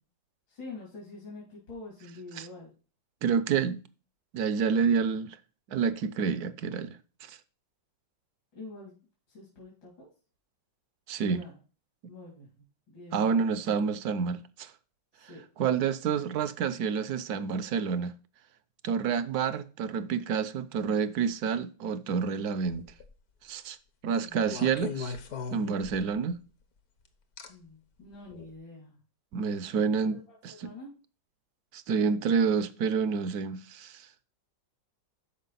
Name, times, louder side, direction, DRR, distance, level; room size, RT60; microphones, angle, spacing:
voice 1, 0.5-2.7 8.6-8.9 9.3-10.1 11.3-11.6 12.1-12.5 12.9-13.3 15.1-15.4 24.2-24.5 27.5-28.9 30.1-30.2 30.6-30.9, left 3 dB, 75° left, 3.7 m, -46 dB
voice 2, 3.2-3.8 4.3-5.4 5.7-7.4 11.1-11.5 13.1-14.7 15.6-18.1 18.8-22.9 23.4-23.8 24.0-25.2 25.5-26.4 29.3-30.7 31.7-34.1, right 6 dB, 65° right, 1.0 m, -28 dB
sound 1, 22.7-23.1 24.5-26.2 27.4-27.5 28.3-28.5, left 5 dB, 55° left, 1.5 m, -38 dB
12.0 x 4.9 x 4.0 m
omnidirectional pair, 2.0 m